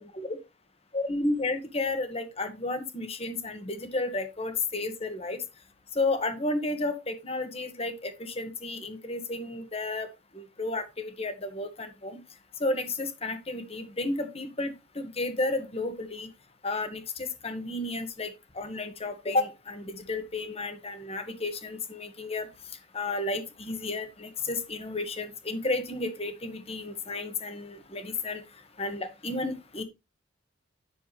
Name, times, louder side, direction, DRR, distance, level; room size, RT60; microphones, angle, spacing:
voice 1, 0.9-5.4 5.9-10.1 10.3-12.2 12.6-16.3 16.6-22.5 22.9-28.4 28.8-29.8, left 2 dB, 35° left, 8 dB, 1.6 m, -32 dB
10.0 x 6.8 x 3.4 m, 0.24 s
head